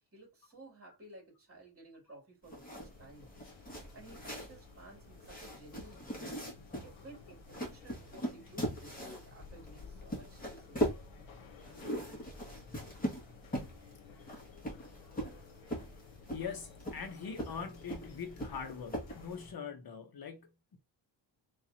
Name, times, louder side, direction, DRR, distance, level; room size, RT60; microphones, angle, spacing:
voice 1, 0.0-3.3 3.9-6.2 6.8-11.0, right 2 dB, 30° right, 2.9 m, -55 dB
sound 1, 2.4-19.4, equal, 20° left, 2.2 m, -41 dB
sound 2, 2.8-19.5, left 5 dB, 85° left, 1.3 m, -55 dB
voice 2, 16.3-20.8, left 6 dB, 50° left, 1.2 m, -43 dB
4.3 x 3.4 x 2.9 m
wide cardioid pair, 125°, 45 cm